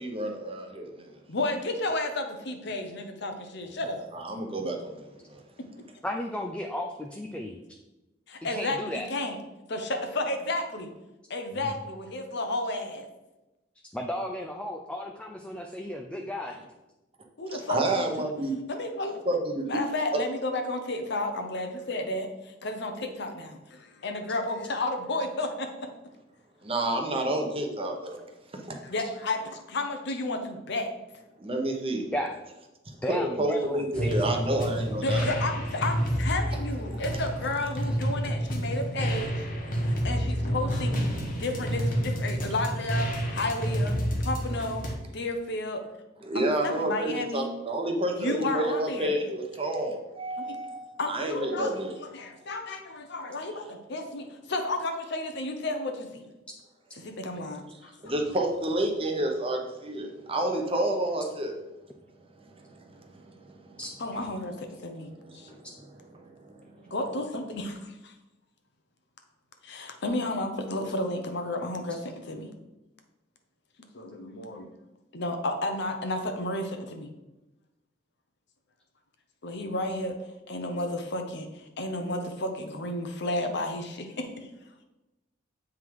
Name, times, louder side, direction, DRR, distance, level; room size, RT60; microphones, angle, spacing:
voice 1, 0.0-1.2 4.1-5.4 16.5-16.6 17.5-18.6 19.2-19.8 20.1-20.2 26.6-28.2 28.5-28.8 31.4-32.1 32.9-35.3 36.5-36.6 36.9-37.0 39.7-40.1 46.2-51.9 57.7-61.5 62.3-63.8 65.2-66.9, right 1 dB, 30° right, 3 dB, 0.9 m, -30 dB
voice 2, 1.3-4.0 8.3-9.4 9.7-10.9 11.3-13.1 17.4-18.3 18.7-19.2 19.7-25.9 28.8-30.9 35.0-39.5 39.8-41.0 41.4-44.0 44.2-44.8 45.1-45.8 46.3-47.5 48.2-49.2 50.5-50.6 51.0-51.7 52.1-56.3 57.0-58.1 64.0-65.5 66.9-68.1 69.6-72.5 73.9-74.7 75.1-77.1 79.4-80.2 80.5-84.5, left 2 dB, 60° left, 6 dB, 0.9 m, -32 dB
voice 3, 6.0-7.6 8.4-9.1 13.9-16.6 32.1-32.3 33.0-34.6 63.8-63.9, left 1 dB, 5° left, 3 dB, 0.4 m, -34 dB
sound 1, 33.9-44.9, equal, 45° left, 1.1 m, -29 dB
7.7 x 3.7 x 4.7 m, 1.0 s
head